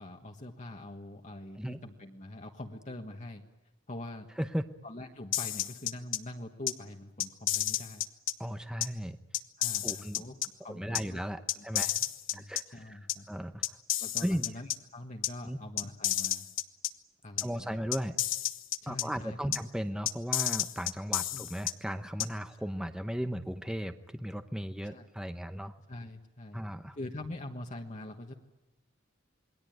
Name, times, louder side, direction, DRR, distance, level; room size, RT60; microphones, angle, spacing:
voice 1, 0.0-3.4 3.9-4.3 4.8-8.1 9.6-11.2 11.6-12.0 12.3-13.3 14.0-16.5 17.2-17.8 18.8-19.6 21.3-21.4 24.8-25.1 25.9-26.6 27.0-28.3, left 1 dB, 40° left, 1 dB, 1.5 m, -44 dB
sound 1, 5.3-6.2 6.7-6.8 7.2-8.3 8.8-8.9 9.3-10.5 10.9-11.0 11.5-12.6 13.1-13.2 13.6-14.8 15.2-15.3 15.8-16.9 17.4-17.5 17.9-19.0 19.5-19.6 20.0-21.7 22.2-22.3, left 13 dB, 70° left, 1.2 m, -31 dB
voice 2, 8.4-9.2 9.8-10.2 10.7-11.9 12.3-13.0 13.3-13.8 14.2-14.5 15.4-15.6 17.4-18.2 18.9-25.7 26.5-27.0, equal, 5° right, 9 dB, 0.9 m, -36 dB
28.0 x 21.5 x 9.3 m, 0.98 s
head